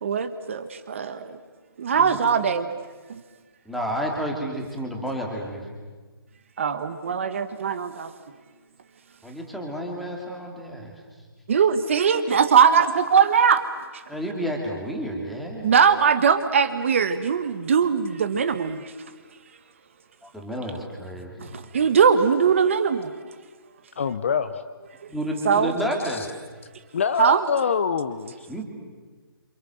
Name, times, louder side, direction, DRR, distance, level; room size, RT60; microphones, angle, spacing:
voice 1, 0.0-1.4 1.8-2.7 6.6-8.1 11.5-13.6 15.6-18.9 21.4-23.1 25.4-25.7 27.2-27.4, right 6 dB, 30° right, 10 dB, 1.3 m, -20 dB
voice 2, 3.7-5.7 9.2-11.0 14.1-15.7 20.2-21.6 25.1-26.3 28.5-28.6, equal, ahead, 0 dB, 2.5 m, -31 dB
voice 3, 24.0-24.6 26.1-26.3 26.9-28.5, left 6 dB, 30° left, 11 dB, 0.8 m, -25 dB
28.0 x 27.5 x 7.7 m, 1.4 s
hypercardioid pair, 175°, 13 cm